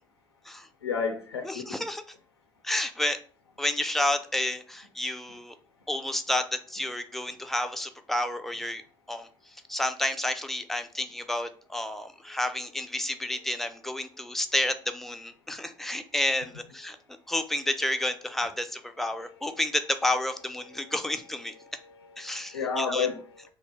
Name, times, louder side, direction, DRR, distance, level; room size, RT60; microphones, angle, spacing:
voice 1, 0.8-1.8 20.7-20.9 21.8-21.9 22.2-23.4, left 5 dB, 85° left, 0.4 m, -31 dB
voice 2, 1.4-2.0 2.6-3.2 3.6-5.5 5.9-8.8 9.1-9.3 9.7-17.0 17.3-21.5 22.2-23.1, left 1 dB, ahead, 0.4 m, -30 dB
2.7 x 2.2 x 3.3 m
figure-of-eight pair, 55°, 13 cm